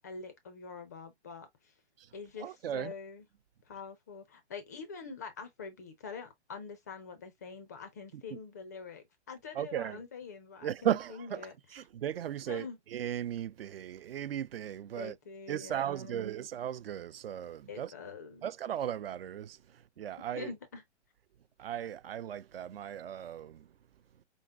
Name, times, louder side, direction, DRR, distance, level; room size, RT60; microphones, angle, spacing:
voice 1, 0.0-1.7 2.1-3.3 3.7-11.5 12.5-12.8 15.0-16.3 17.7-18.5 20.3-20.8, left 5 dB, 15° left, 0.4 m, -45 dB
voice 2, 2.4-2.9 8.1-8.4 9.5-10.0 10.6-11.5 11.7-15.1 15.5-17.9 18.4-20.5 21.6-23.7, right 10 dB, 55° right, 0.5 m, -36 dB
5.0 x 3.7 x 2.3 m
hypercardioid pair, 150°, 35 cm